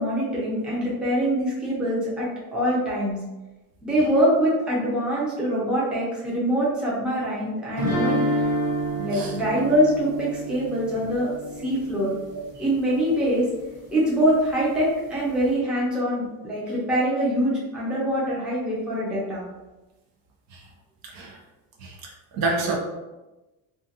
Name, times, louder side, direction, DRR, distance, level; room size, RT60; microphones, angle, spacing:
voice 1, 0.0-3.2 3.8-8.5 8.9-11.3 11.6-12.1 12.6-13.5 13.9-19.4, equal, ahead, -7 dB, 0.5 m, -24 dB
sound 1, 7.8-12.7, right 1 dB, 20° right, 1.1 m, -28 dB
voice 2, 21.0-21.4 21.8-22.8, right 3 dB, 60° right, -1 dB, 0.7 m, -29 dB
2.4 x 2.4 x 2.7 m, 1.1 s
cardioid pair, 150°, 41 cm